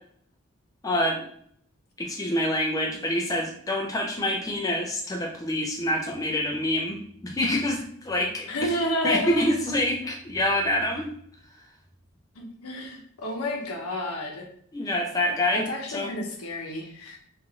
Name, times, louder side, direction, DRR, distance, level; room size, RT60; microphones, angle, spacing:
voice 1, 0.8-1.3 2.0-8.7 9.0-11.1 14.7-15.7 15.9-16.1, left 1 dB, 15° left, 0 dB, 0.3 m, -26 dB
voice 2, 8.5-9.6 12.4-14.4 15.5-17.2, equal, 90° left, 1 dB, 0.7 m, -30 dB
3.2 x 2.5 x 2.3 m, 0.65 s
head